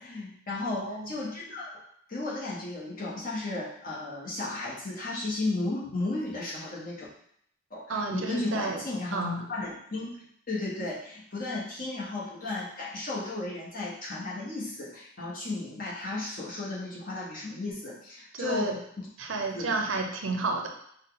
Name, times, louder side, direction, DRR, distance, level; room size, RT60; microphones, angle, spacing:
voice 1, 0.0-1.8 2.1-7.1 7.7-9.2 9.5-10.2 10.5-19.1 19.5-19.8, left 2 dB, 45° left, -5 dB, 1.3 m, -34 dB
voice 2, 0.7-1.1 7.9-8.8 9.1-9.4 18.3-18.8 19.2-20.7, right 3 dB, 75° right, 2 dB, 0.7 m, -31 dB
5.3 x 2.4 x 3.8 m, 0.67 s
head